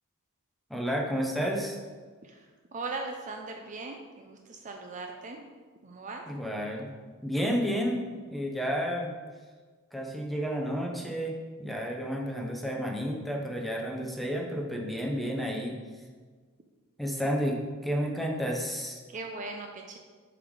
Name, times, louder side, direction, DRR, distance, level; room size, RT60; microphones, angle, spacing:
voice 1, 0.7-1.8 6.3-6.9 7.2-9.1 9.9-15.8 17.0-19.0, equal, ahead, 0 dB, 0.8 m, -31 dB
voice 2, 2.2-5.4 5.8-6.3 19.1-20.0, right 3 dB, 35° right, 3 dB, 0.5 m, -39 dB
6.7 x 4.0 x 4.8 m, 1.5 s
head